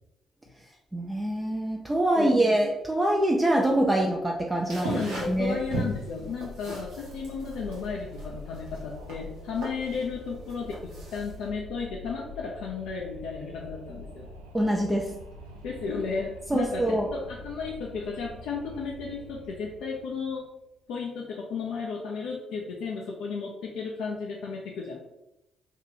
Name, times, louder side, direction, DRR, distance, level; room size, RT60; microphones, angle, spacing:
voice 1, 0.9-5.6 14.5-15.1 16.5-17.1, right 1 dB, 15° right, -1 dB, 0.5 m, -25 dB
sound 1, 4.7-11.5, right 1 dB, 70° right, 0.9 m, -37 dB
voice 2, 4.8-14.3 15.6-20.4 20.9-25.0, left 5 dB, 65° left, -2 dB, 0.4 m, -34 dB
Wind, 5.1-20.5, left 1 dB, 85° right, 0.4 m, -45 dB
2.8 x 2.7 x 3.8 m, 0.89 s
figure-of-eight pair, 40°, 0 cm